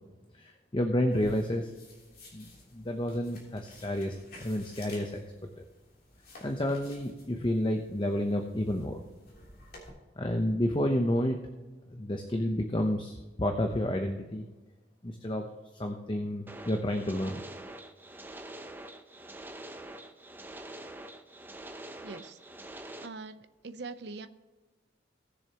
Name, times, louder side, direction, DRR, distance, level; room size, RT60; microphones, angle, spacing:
voice 1, 0.4-1.7 2.3-5.2 5.6-5.7 6.4-9.0 10.2-11.4 11.9-14.5 15.0-15.5 15.8-17.4, left 1 dB, 25° left, 4 dB, 0.8 m, -30 dB
sound 1, 1.1-9.9, left 2 dB, 50° left, 3.2 m, -54 dB
sound 2, 16.5-23.1, right 1 dB, 10° right, 0.7 m, -45 dB
voice 2, 22.0-22.4 23.0-24.3, right 3 dB, 65° right, 11 dB, 0.7 m, -42 dB
18.5 x 7.0 x 3.0 m, 1.2 s
head